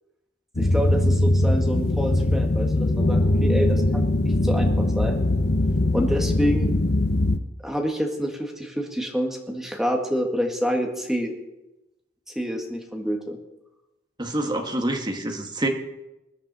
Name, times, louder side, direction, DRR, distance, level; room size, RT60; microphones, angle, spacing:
sound 1, 0.6-7.4, left 1 dB, 55° left, 0.9 m, -21 dB
voice 1, 0.6-5.2 5.9-6.7 7.6-11.4 12.3-13.4, equal, ahead, 1 dB, 1.9 m, -27 dB
voice 2, 14.2-15.7, right 1 dB, 20° right, 3 dB, 1.7 m, -26 dB
20.5 x 12.5 x 4.3 m, 0.94 s
head